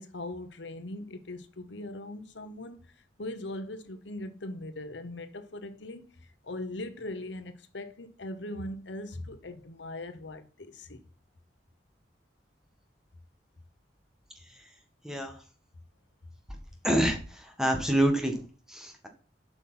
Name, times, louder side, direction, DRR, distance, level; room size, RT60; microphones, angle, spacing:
voice 1, 0.0-2.9 3.2-11.0, left 1 dB, 70° left, 1.1 m, -40 dB
voice 2, 15.0-15.4 16.8-18.4 18.7-19.1, right 1 dB, 5° right, 1.7 m, -27 dB
8.2 x 5.8 x 5.6 m
head